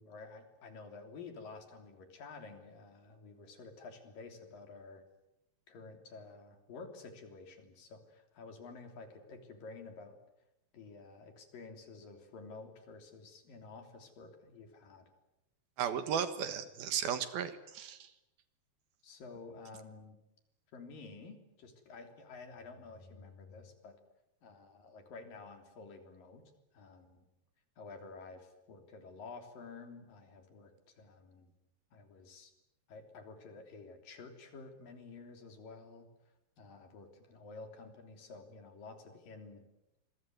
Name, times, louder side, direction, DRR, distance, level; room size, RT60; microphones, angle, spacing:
voice 1, 0.0-5.0 5.7-10.2 10.7-15.0 19.0-20.2 20.7-24.0 24.4-26.4 26.7-27.2 27.8-31.5 31.9-32.5 32.9-36.1 36.6-39.7, left 4 dB, 55° left, 6 dB, 4.9 m, -51 dB
voice 2, 15.8-18.1, right 8 dB, 70° right, 11 dB, 3.2 m, -35 dB
27.0 x 22.5 x 9.4 m, 0.89 s
omnidirectional pair, 4.7 m